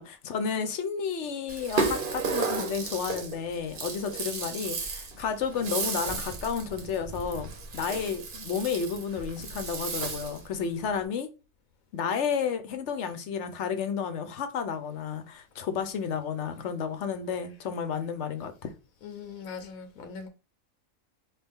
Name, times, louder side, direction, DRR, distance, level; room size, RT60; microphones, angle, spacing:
voice 1, 0.0-11.3 11.9-18.7, left 6 dB, 65° left, 1.0 m, -32 dB
Rattle (instrument), 1.5-10.5, right 4 dB, 45° right, 0.9 m, -34 dB
voice 2, 19.0-20.3, left 5 dB, 90° left, 1.2 m, -41 dB
4.5 x 3.1 x 3.6 m
omnidirectional pair, 1.4 m